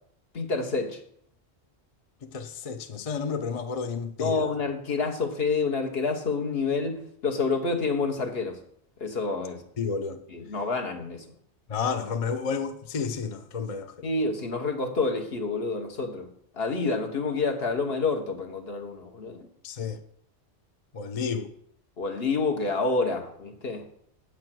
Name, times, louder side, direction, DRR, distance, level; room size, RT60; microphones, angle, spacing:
voice 1, 0.3-1.0 4.2-8.6 9.0-9.6 10.3-11.2 14.0-16.3 16.6-19.4 22.0-23.9, left 4 dB, 65° left, 1.5 m, -28 dB
voice 2, 2.2-4.5 9.8-10.2 11.7-14.1 19.6-20.0 20.9-21.5, left 5 dB, 40° left, 0.6 m, -31 dB
8.9 x 5.0 x 7.6 m
omnidirectional pair, 1.1 m